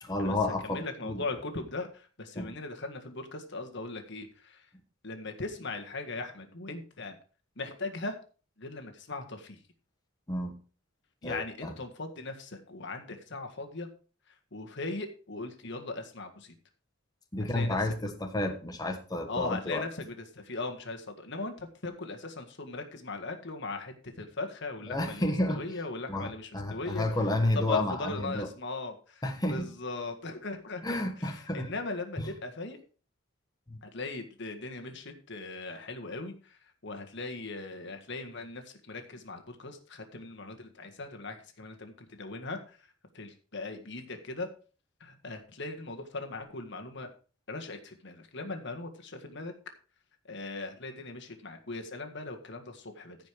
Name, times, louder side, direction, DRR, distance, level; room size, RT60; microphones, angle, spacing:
voice 1, 0.0-1.2 2.3-2.5 10.3-10.5 11.2-11.7 17.3-19.9 24.9-25.6 26.1-28.5 29.2-29.7 30.8-31.7 32.2-32.3 33.7-33.8, left 1 dB, 20° left, 3 dB, 1.4 m, -31 dB
voice 2, 0.6-4.7 5.0-7.2 7.6-8.2 8.6-9.6 11.2-13.9 14.5-16.5 17.5-17.8 19.3-27.1 27.7-29.2 29.5-32.8 33.8-42.6 43.1-44.5 45.0-47.1 47.5-49.5 50.3-53.2, left 3 dB, 60° left, 5 dB, 1.8 m, -39 dB
15.0 x 5.3 x 4.7 m, 0.37 s
head